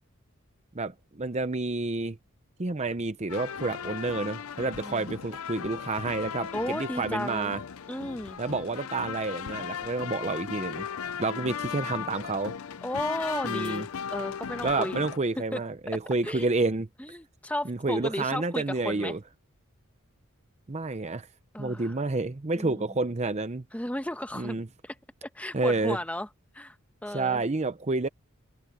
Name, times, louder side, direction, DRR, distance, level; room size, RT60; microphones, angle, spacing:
voice 1, 0.7-2.2 2.6-7.6 8.4-10.9 11.2-12.5 13.4-13.9 14.6-16.9 17.6-19.2 20.7-21.3 21.6-23.6 24.3-24.7 25.5-26.0 27.1-28.1, right 3 dB, 30° right, 0.7 m, -29 dB
sound 1, 3.3-15.2, left 7 dB, 80° left, 0.6 m, -37 dB
voice 2, 4.8-5.1 6.5-7.5 7.9-8.4 11.3-12.1 12.8-15.0 15.5-15.6 16.2-16.5 17.0-19.1 21.5-22.0 22.5-23.0 23.7-24.6 24.8-24.9 25.3-26.3 26.5-26.7 27.0-27.4, left 1 dB, 5° left, 1.2 m, -34 dB
head